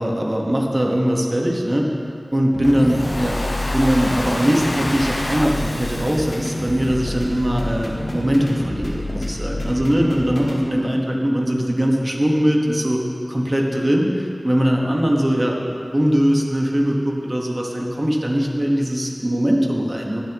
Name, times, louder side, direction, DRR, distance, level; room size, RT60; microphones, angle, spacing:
voice 1, 0.0-1.9 2.3-13.0 13.3-20.2, equal, 30° right, -1 dB, 1.5 m, -21 dB
sound 1, 2.5-10.6, left 1 dB, 65° left, 2.1 m, -29 dB
Domestic sounds home sounds, 2.6-7.6, left 1 dB, 35° left, 0.7 m, -30 dB
20.5 x 7.2 x 3.1 m, 2.8 s
wide cardioid pair, 60°, 0 cm